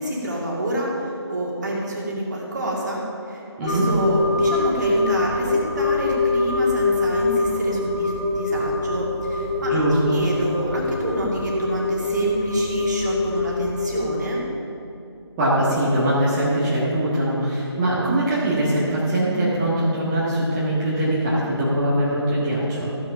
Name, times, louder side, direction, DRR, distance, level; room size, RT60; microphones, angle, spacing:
voice 1, 0.0-14.4, right 1 dB, 40° right, -3 dB, 2.4 m, -28 dB
sound 1, 3.7-14.3, left 3 dB, 25° left, 0.9 m, -24 dB
voice 2, 9.6-10.2 15.4-22.9, right 1 dB, 15° right, -10 dB, 1.6 m, -22 dB
15.0 x 6.3 x 5.7 m, 2.8 s
figure-of-eight pair, 160°, 14 cm